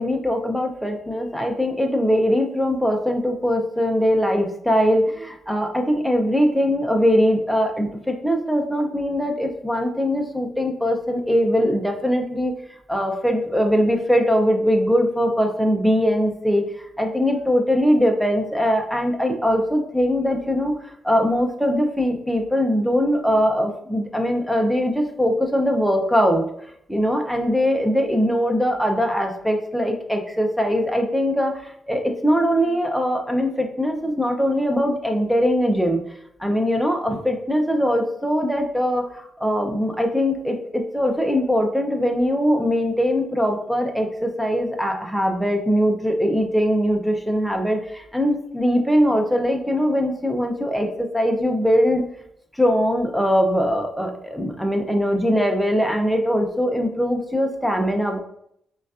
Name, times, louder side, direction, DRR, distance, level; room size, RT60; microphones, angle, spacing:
voice 1, 0.0-12.5 12.9-26.4 26.9-36.0 36.4-52.0 52.5-58.2, equal, ahead, 4 dB, 0.5 m, -21 dB
5.1 x 2.3 x 2.4 m, 0.72 s
cardioid pair, 115°, 0 cm